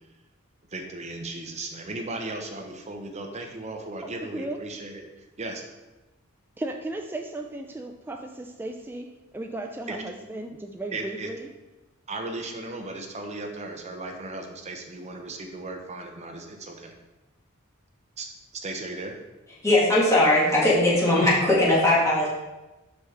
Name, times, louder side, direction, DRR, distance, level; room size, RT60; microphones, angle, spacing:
voice 1, 0.7-5.6 9.9-10.0 10.9-11.3 12.1-16.9 18.2-18.3 18.5-19.2, right 2 dB, 30° right, 2 dB, 0.9 m, -36 dB
voice 2, 4.0-4.6 6.6-9.1 9.3-11.5, right 2 dB, 10° right, 3 dB, 0.3 m, -35 dB
voice 3, 19.6-22.3, left 1 dB, 15° left, -7 dB, 2.1 m, -19 dB
6.1 x 5.8 x 3.8 m, 1.1 s
head